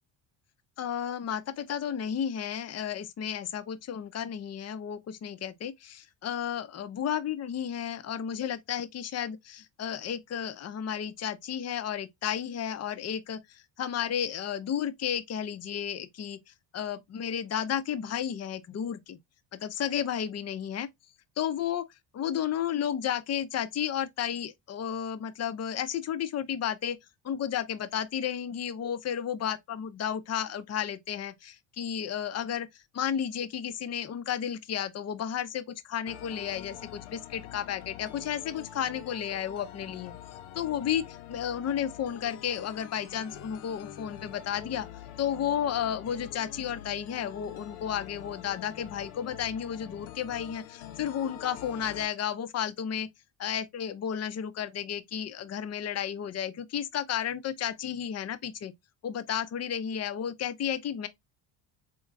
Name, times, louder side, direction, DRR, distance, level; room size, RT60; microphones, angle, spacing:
voice 1, 0.8-16.4 16.7-19.2 19.5-20.9 21.4-21.8 22.1-27.0 27.2-40.1 40.5-44.9 45.2-53.1 53.4-58.7 59.0-61.1, left 9 dB, 35° left, 0.5 m, -32 dB
sound 1, 36.1-52.1, left 11 dB, 75° left, 0.7 m, -45 dB
4.0 x 2.8 x 2.4 m
supercardioid pair, 75°, 49 cm